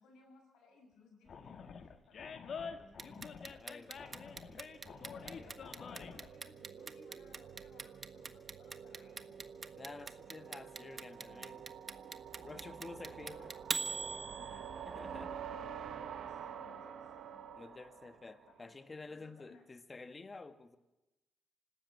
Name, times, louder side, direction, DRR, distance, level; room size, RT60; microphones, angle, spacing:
voice 1, 0.0-3.4 5.1-9.4 11.9-12.2 12.4-14.8 15.0-17.4 18.5-18.7 19.1-19.6, left 3 dB, 75° left, 3 dB, 5.9 m, -63 dB
Animal, 1.3-6.3, left 6 dB, 60° left, 1.8 m, -47 dB
Clock, 3.0-15.0, right 4 dB, 40° right, 1.4 m, -42 dB
sound 1, 3.5-18.7, right 8 dB, 65° right, 1.2 m, -49 dB
voice 2, 3.6-4.5 5.2-5.6 9.8-11.7 12.4-13.5 14.4-15.4 17.6-20.8, left 3 dB, 35° left, 11 dB, 2.0 m, -51 dB
25.5 x 13.0 x 8.5 m, 0.98 s
hypercardioid pair, 45°, 0 cm